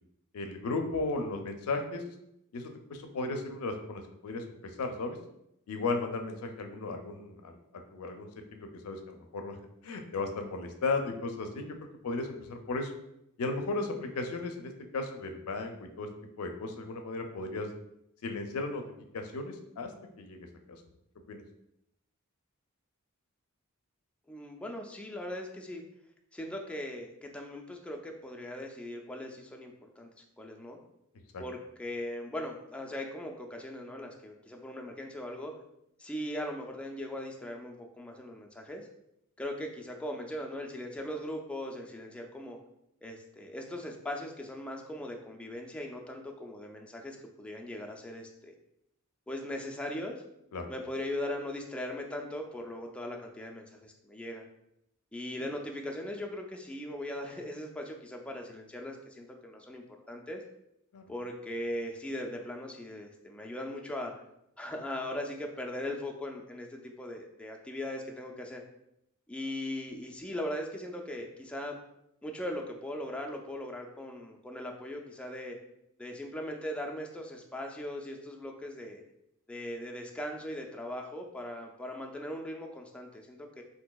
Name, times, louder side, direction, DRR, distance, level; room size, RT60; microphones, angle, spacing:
voice 1, 0.3-2.0 2.5-4.4 4.8-5.2 5.7-9.6 9.8-11.7 12.0-12.9 13.4-16.1 16.4-17.7 18.2-18.8 19.1-19.9 20.2-20.8 21.3-21.4 31.3-31.4 50.5-50.7 60.9-61.1, left 3 dB, 75° left, 5 dB, 0.4 m, -35 dB
voice 2, 24.3-25.8 26.3-30.1 30.4-30.8 31.4-35.5 36.0-38.9 39.4-42.6 43.0-48.5 49.3-50.2 50.7-54.4 55.1-60.4 61.1-64.1 64.6-68.6 69.3-71.8 72.2-75.6 76.0-79.0 79.5-83.6, left 1 dB, 5° left, 1 dB, 0.3 m, -39 dB
3.8 x 2.6 x 2.2 m, 0.80 s
head